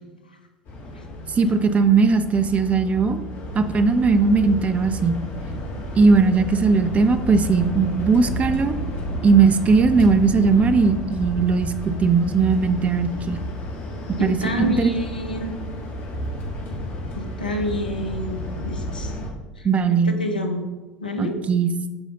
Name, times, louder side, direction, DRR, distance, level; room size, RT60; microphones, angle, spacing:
sound 1, 0.7-19.3, equal, 50° left, 2.3 m, -31 dB
voice 1, 1.4-3.2 3.5-5.2 6.0-8.8 9.2-13.4 14.2-14.9 19.6-20.2 21.2-21.7, right 4 dB, 30° right, 10 dB, 0.8 m, -18 dB
voice 2, 14.2-15.5 17.1-18.4 18.7-19.1 19.9-20.7 21.0-21.4, equal, 90° left, 4 dB, 1.1 m, -28 dB
13.5 x 5.0 x 3.9 m, 1.2 s
figure-of-eight pair, 70°, 5 cm